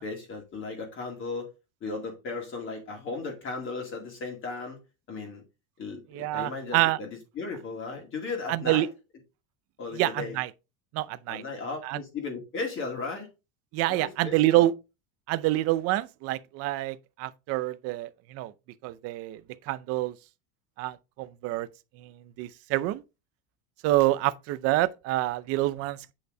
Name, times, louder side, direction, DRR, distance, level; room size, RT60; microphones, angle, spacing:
voice 1, 0.0-1.5 1.8-4.8 5.1-5.4 5.8-8.9 9.8-10.4 11.3-13.3 13.9-14.7, left 4 dB, 30° left, 2.2 m, -36 dB
voice 2, 6.1-7.0 8.5-8.9 9.9-10.5 10.9-11.4 11.8-12.0 13.7-14.7 15.3-18.5 18.8-19.4 19.7-20.1 20.8-21.7 22.0-23.0 23.8-26.1, right 16 dB, 35° right, 0.5 m, -27 dB
8.5 x 5.5 x 3.8 m
cardioid pair, 165°, 42 cm